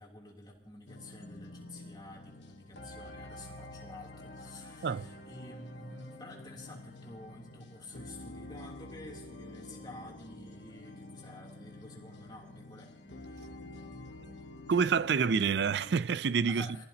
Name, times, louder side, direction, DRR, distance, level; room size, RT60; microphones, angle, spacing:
voice 1, 0.0-13.5 14.1-14.2 16.5-16.8, left 2 dB, 25° left, 3.1 m, -50 dB
sound 1, 0.9-16.0, left 2 dB, 80° left, 1.8 m, -48 dB
voice 2, 14.7-16.7, right 6 dB, 65° right, 0.4 m, -27 dB
24.0 x 14.5 x 2.9 m
head